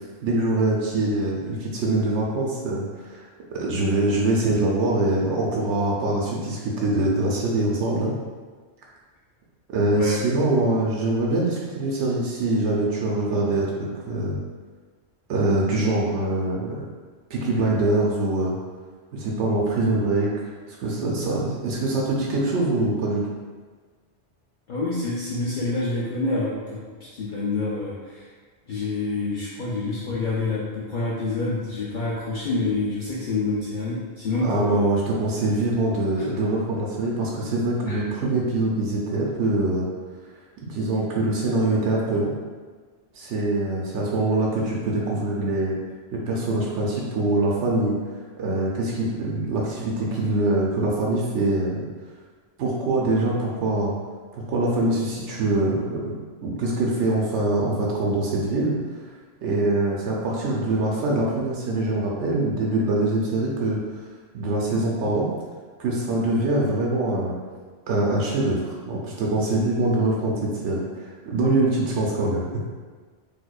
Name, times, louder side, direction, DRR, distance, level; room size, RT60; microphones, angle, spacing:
voice 1, 0.2-3.2 3.5-8.1 9.7-13.7 14.1-14.4 15.3-16.8 17.3-18.6 19.1-20.3 20.7-23.2 34.4-39.9 40.6-42.3 43.1-45.8 46.1-48.0 48.4-51.8 52.6-53.9 54.3-56.1 56.4-58.7 59.4-63.8 64.3-65.3 65.8-67.4 67.9-72.5, right 2 dB, 85° right, -3 dB, 0.9 m, -24 dB
voice 2, 24.7-28.3 28.7-35.0 37.9-38.0, left 3 dB, 55° left, -6 dB, 0.6 m, -27 dB
4.3 x 2.5 x 2.3 m, 1.5 s
omnidirectional pair, 1.2 m